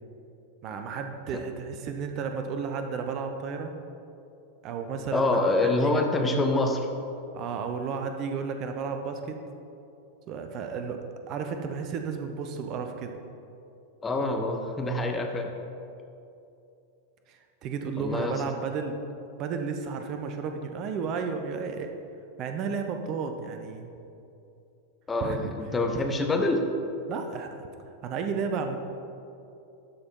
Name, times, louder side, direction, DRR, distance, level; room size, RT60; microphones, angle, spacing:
voice 1, 0.6-3.7 4.6-6.0 7.3-9.4 10.3-13.2 17.3-19.0 19.4-21.9 22.4-23.9 25.2-25.4 27.1-27.5 28.0-28.8, right 5 dB, 40° right, 5 dB, 0.7 m, -33 dB
voice 2, 5.1-6.9 14.0-15.5 18.0-18.3 25.1-26.7, left 2 dB, 15° left, 3 dB, 0.8 m, -26 dB
12.5 x 4.4 x 4.5 m, 2.7 s
figure-of-eight pair, 90°, 0 cm